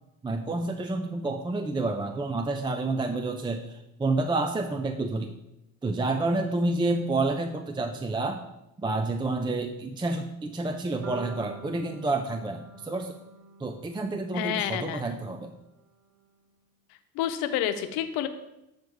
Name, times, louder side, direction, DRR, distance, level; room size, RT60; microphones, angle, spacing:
voice 1, 0.2-5.3 5.8-8.4 8.8-13.2 13.6-15.5, right 2 dB, 15° right, 7 dB, 0.4 m, -29 dB
sound 1, 11.0-15.1, right 5 dB, 45° right, 0.7 m, -46 dB
voice 2, 14.3-15.2 17.1-18.3, left 10 dB, 85° left, 9 dB, 0.8 m, -29 dB
7.9 x 3.5 x 6.2 m, 0.88 s
supercardioid pair, 90°, 37 cm